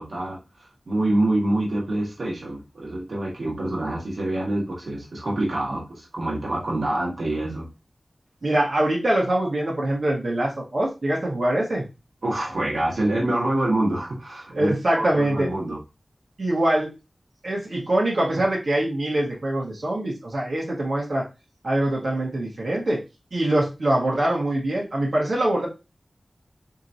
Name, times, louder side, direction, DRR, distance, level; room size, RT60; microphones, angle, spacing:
voice 1, 0.0-7.7 12.2-15.8, right 1 dB, 80° right, -3 dB, 1.7 m, -26 dB
voice 2, 8.4-11.8 14.5-15.5 16.4-16.9 17.4-21.2 21.6-23.0 23.3-25.7, right 1 dB, 65° right, -4 dB, 1.7 m, -23 dB
4.6 x 3.6 x 2.7 m, 0.27 s
wide cardioid pair, 75°, 0 cm